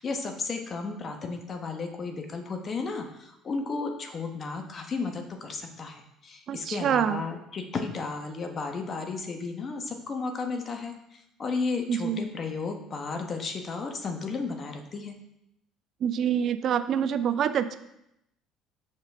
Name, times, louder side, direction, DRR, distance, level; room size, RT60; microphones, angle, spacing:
voice 1, 0.0-15.2, left 4 dB, 40° left, 4 dB, 1.0 m, -33 dB
voice 2, 6.5-7.2 11.9-12.3 16.0-17.7, right 8 dB, 55° right, 11 dB, 0.4 m, -26 dB
6.5 x 5.5 x 3.5 m, 0.82 s
supercardioid pair, 90°, 0 cm